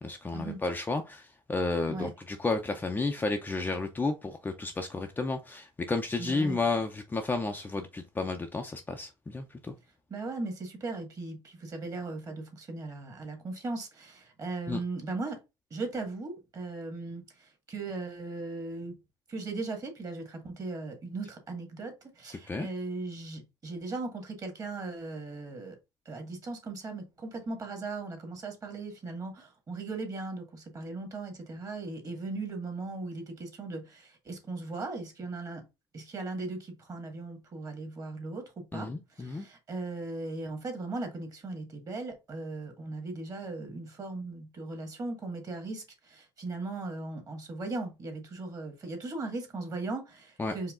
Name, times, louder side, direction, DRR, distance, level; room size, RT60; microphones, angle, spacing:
voice 1, 0.0-9.7 14.7-14.8 22.5-22.7 38.7-39.5 50.4-50.5, left 3 dB, 15° left, 0.6 m, -32 dB
voice 2, 6.2-6.6 10.1-15.4 15.7-19.0 19.3-25.8 26.1-35.6 35.9-38.9 39.2-50.7, right 3 dB, 30° right, 1.8 m, -38 dB
4.8 x 2.9 x 3.7 m
cardioid pair, 120°, 11 cm